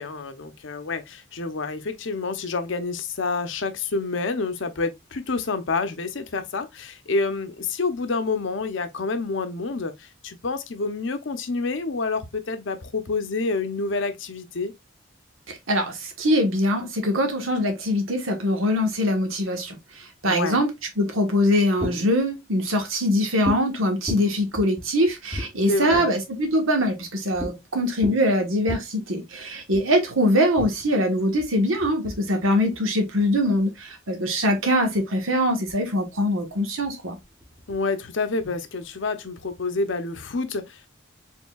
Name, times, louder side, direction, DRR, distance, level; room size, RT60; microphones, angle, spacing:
voice 1, 0.0-14.7 20.2-20.6 25.7-26.1 37.7-40.9, left 3 dB, 65° left, 0.7 m, -28 dB
voice 2, 15.5-19.8 20.2-20.7 21.0-37.2, equal, 85° right, 1.3 m, -23 dB
sound 1, 21.8-22.3 23.5-23.7 24.1-26.3 27.3-27.6 27.9-28.8 29.7-29.9 30.6-33.9 34.6-35.2 35.7-35.8 36.0-37.8 38.4-39.3, equal, 15° right, 1.0 m, -36 dB
4.4 x 3.8 x 2.3 m
head